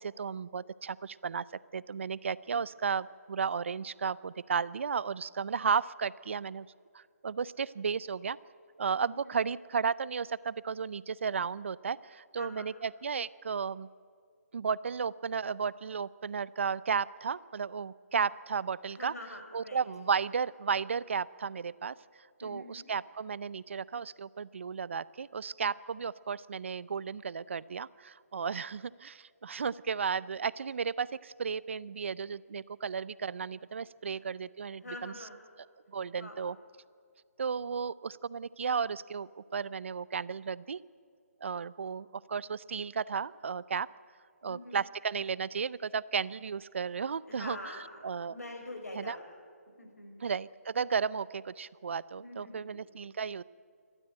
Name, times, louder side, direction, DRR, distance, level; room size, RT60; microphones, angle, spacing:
voice 1, 0.0-1.4 1.7-6.7 6.9-8.4 8.8-13.9 14.5-19.1 19.5-21.9 22.4-35.1 35.9-36.6 37.4-40.8 41.4-43.9 44.4-47.8 48.0-48.4 48.9-49.2 50.2-53.4, right 6 dB, 55° right, 19 dB, 0.5 m, -34 dB
voice 2, 9.0-9.4 12.4-12.7 18.9-19.8 22.4-22.8 34.8-35.4 36.1-36.4 44.4-44.8 47.3-47.9 48.3-49.2 49.8-50.2 52.2-52.8, left 1 dB, 90° left, 4 dB, 5.6 m, -45 dB
28.5 x 12.5 x 8.9 m, 2.2 s
hypercardioid pair, 160°, 8 cm